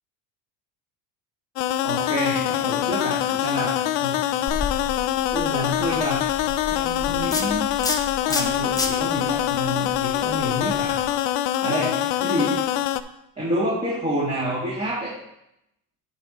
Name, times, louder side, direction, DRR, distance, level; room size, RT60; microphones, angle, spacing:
sound 1, 1.6-13.0, left 13 dB, 80° left, 0.5 m, -24 dB
voice 1, 1.8-4.2 5.3-6.2 6.7-7.7 8.2-10.9 11.6-12.6 13.4-15.1, equal, 15° right, -8 dB, 2.5 m, -28 dB
sound 2, 4.5-11.1, left 3 dB, 10° left, 0.7 m, -32 dB
9.6 x 4.3 x 4.5 m, 0.82 s
cardioid pair, 130°, 40 cm